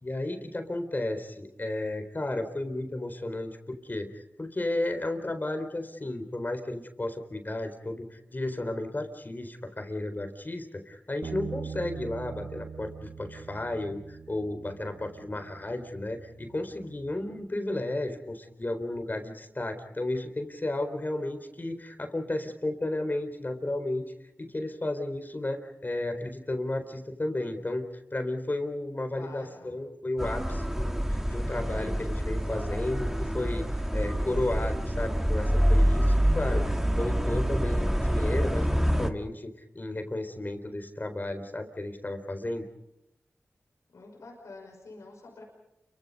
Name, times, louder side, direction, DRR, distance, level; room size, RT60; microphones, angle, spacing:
voice 1, 0.0-24.1 24.4-27.9 28.1-33.7 33.9-42.7, left 1 dB, 40° left, 7 dB, 4.0 m, -33 dB
Bass guitar, 11.2-17.5, right 6 dB, 75° right, 1.0 m, -43 dB
voice 2, 29.1-29.8 43.9-45.4, left 3 dB, 90° left, 0 dB, 5.5 m, -47 dB
sound 1, 30.2-39.1, equal, 10° right, 2.0 m, -26 dB
29.0 x 24.5 x 5.4 m, 0.86 s
cardioid pair, 40°, 5 cm